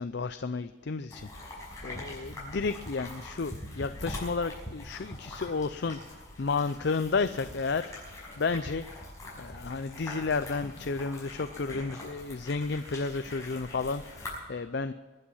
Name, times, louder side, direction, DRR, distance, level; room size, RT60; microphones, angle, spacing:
voice 1, 0.0-7.9 8.4-9.0 9.4-14.9, left 4 dB, 55° left, 10 dB, 0.5 m, -32 dB
sound 1, 1.1-14.4, left 1 dB, 15° left, 5.6 m, -43 dB
23.0 x 8.8 x 5.6 m, 1.3 s
head